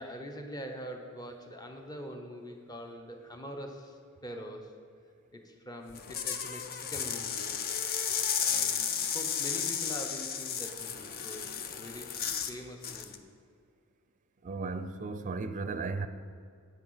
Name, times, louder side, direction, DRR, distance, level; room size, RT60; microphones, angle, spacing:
voice 1, 0.0-4.7 5.3-7.6 8.4-13.2, equal, 20° left, 0.9 m, -44 dB
sound 1, 5.9-12.6 12.8-13.2, left 7 dB, 45° left, 0.6 m, -33 dB
voice 2, 14.4-16.1, right 3 dB, 35° right, 0.5 m, -35 dB
8.7 x 7.9 x 5.7 m
head